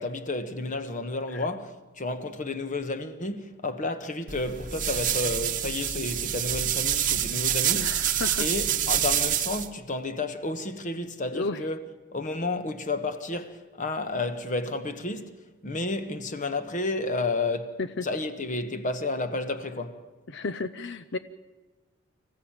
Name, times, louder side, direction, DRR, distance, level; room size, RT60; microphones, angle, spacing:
voice 1, 0.0-8.0 8.4-11.8 12.1-15.4 15.6-20.0, left 2 dB, 40° left, 1.3 m, -31 dB
sound 1, 4.3-9.7, right 10 dB, 40° right, 1.0 m, -27 dB
voice 2, 7.7-8.5 11.3-11.6 17.8-18.0 20.3-21.2, left 3 dB, 60° left, 0.7 m, -32 dB
26.0 x 15.0 x 8.9 m
head